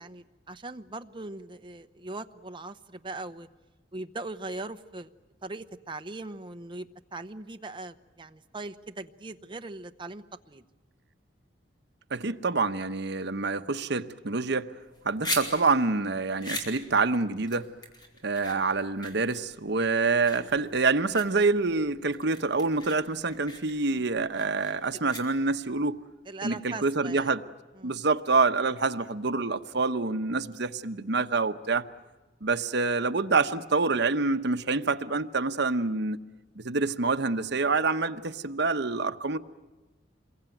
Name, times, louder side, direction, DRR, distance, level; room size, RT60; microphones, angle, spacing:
voice 1, 0.0-3.5 3.9-5.1 5.4-10.6 23.9-24.0 26.3-27.3 27.8-28.0, right 2 dB, 25° right, 0.9 m, -40 dB
voice 2, 12.1-14.7 15.0-17.7 18.2-26.0 26.4-27.4 27.8-31.9 32.4-36.2 36.6-39.4, right 3 dB, 65° right, 1.0 m, -27 dB
sound 1, 14.8-25.7, left 1 dB, 25° left, 4.7 m, -40 dB
27.5 x 22.5 x 9.2 m
head